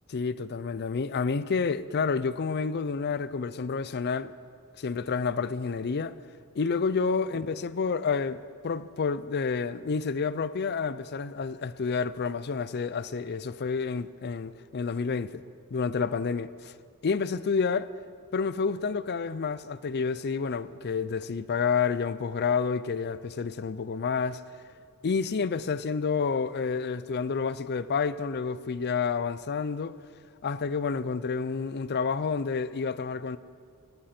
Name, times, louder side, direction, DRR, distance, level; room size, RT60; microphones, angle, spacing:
voice 1, 0.1-4.3 4.8-6.2 6.5-15.4 15.7-16.7 17.0-17.9 18.3-24.4 25.0-30.0 30.4-33.4, left 5 dB, 50° left, 0.5 m, -29 dB
19.0 x 17.0 x 4.4 m
head